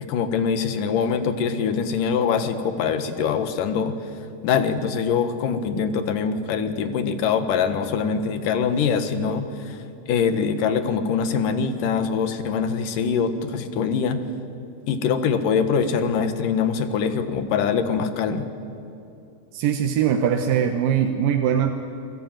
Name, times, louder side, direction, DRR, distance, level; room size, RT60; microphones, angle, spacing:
voice 1, 0.0-3.9 4.4-14.2 14.9-18.5, left 6 dB, 80° left, 9 dB, 3.1 m, -23 dB
voice 2, 19.5-21.7, right 8 dB, 85° right, 5 dB, 2.8 m, -21 dB
29.5 x 21.0 x 9.2 m, 2.8 s
omnidirectional pair, 3.8 m